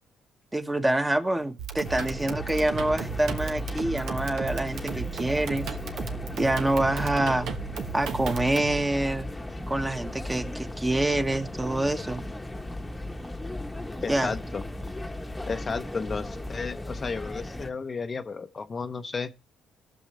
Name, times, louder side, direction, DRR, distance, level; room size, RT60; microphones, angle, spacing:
voice 1, 0.5-5.7 6.3-7.5 7.9-9.3 9.7-12.2 14.1-14.3, right 1 dB, 15° right, 1.2 m, -26 dB
sound 1, 1.6-8.8, right 7 dB, 75° right, 1.1 m, -35 dB
sound 2, 1.8-17.7, left 1 dB, 15° left, 1.1 m, -36 dB
voice 2, 14.0-14.6 15.5-19.3, left 4 dB, 40° left, 0.7 m, -33 dB
18.0 x 6.3 x 3.2 m
supercardioid pair, 65°, 0 cm